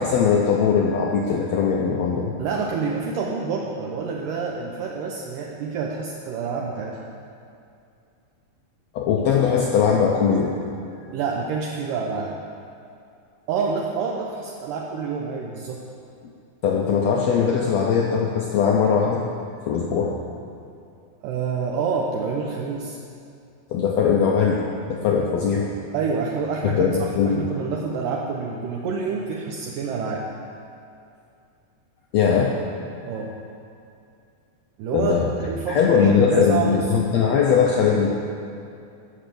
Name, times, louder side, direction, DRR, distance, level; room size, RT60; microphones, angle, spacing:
voice 1, 0.0-2.3 8.9-10.5 16.6-19.2 19.7-20.2 23.7-24.6 24.9-25.7 26.7-27.5 32.1-32.5 33.0-33.1 34.9-35.3 35.7-38.1, left 6 dB, 85° left, -1 dB, 1.5 m, -20 dB
voice 2, 2.4-7.0 11.1-12.4 13.5-15.8 21.2-23.0 25.9-27.0 27.3-30.3 33.0-33.3 34.8-36.9, right 5 dB, 75° right, -1 dB, 2.4 m, -27 dB
16.0 x 6.6 x 7.0 m, 2.5 s
omnidirectional pair, 4.2 m